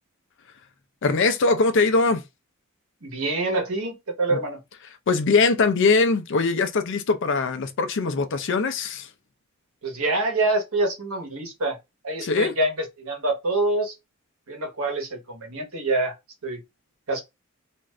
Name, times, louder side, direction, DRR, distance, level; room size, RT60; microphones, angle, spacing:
voice 1, 1.0-2.2 4.3-4.4 5.1-9.1 12.2-12.5, left 4 dB, 60° left, 0.5 m, -21 dB
voice 2, 3.0-4.6 9.8-11.8 12.0-14.0 14.5-16.2 16.4-16.6 17.1-17.2, right 2 dB, 85° right, 1.1 m, -26 dB
2.5 x 2.4 x 3.1 m
head